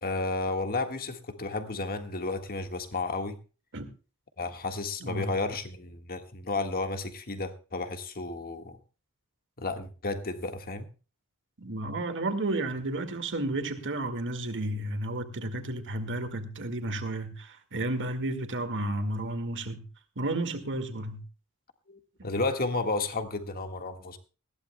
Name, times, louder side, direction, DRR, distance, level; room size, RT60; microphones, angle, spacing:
voice 1, 0.0-3.4 4.4-8.8 9.6-10.9 21.9-24.2, left 3 dB, 45° left, 1.6 m, -32 dB
voice 2, 11.6-19.9 20.2-21.2 22.2-22.3, right 2 dB, 55° right, 1.9 m, -32 dB
19.5 x 15.5 x 2.2 m
head